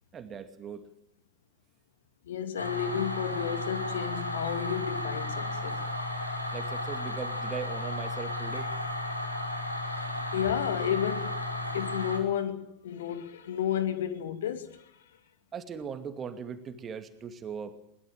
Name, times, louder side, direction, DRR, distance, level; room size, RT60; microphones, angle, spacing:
voice 1, 0.1-0.9 6.5-8.7 15.5-17.8, right 7 dB, 25° right, 2.5 m, -39 dB
voice 2, 2.3-5.8 10.3-14.8, left 9 dB, 60° left, 2.5 m, -32 dB
sound 1, 2.6-12.2, left 1 dB, 85° left, 4.9 m, -34 dB
23.0 x 21.5 x 9.0 m
figure-of-eight pair, 90°, 0 cm